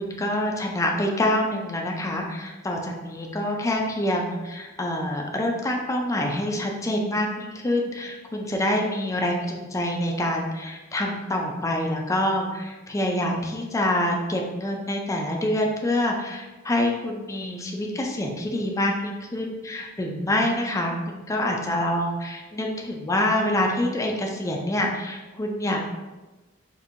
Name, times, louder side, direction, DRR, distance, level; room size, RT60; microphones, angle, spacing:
voice 1, 0.0-25.8, left 1 dB, 15° left, 1 dB, 0.4 m, -26 dB
4.3 x 2.6 x 2.5 m, 1.2 s
head